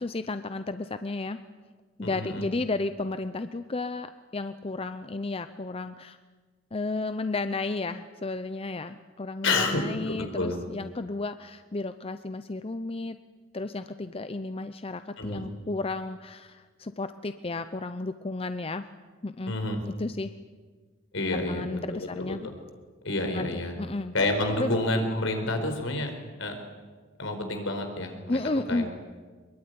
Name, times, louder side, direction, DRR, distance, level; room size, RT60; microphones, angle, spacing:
voice 1, 0.0-1.4 2.0-6.2 6.7-13.2 13.5-18.9 19.2-19.5 19.9-20.3 21.3-22.5 23.3-23.5 23.8-24.1 24.6-24.8 28.3-28.9, left 3 dB, 30° left, 11 dB, 0.7 m, -33 dB
voice 2, 2.0-2.4 9.4-10.6 15.2-15.4 19.5-19.8 21.1-22.4 23.0-23.7 24.1-26.1 26.4-26.6 27.2-28.9, left 2 dB, 70° left, 5 dB, 4.8 m, -29 dB
23.0 x 22.5 x 9.6 m, 1.4 s
head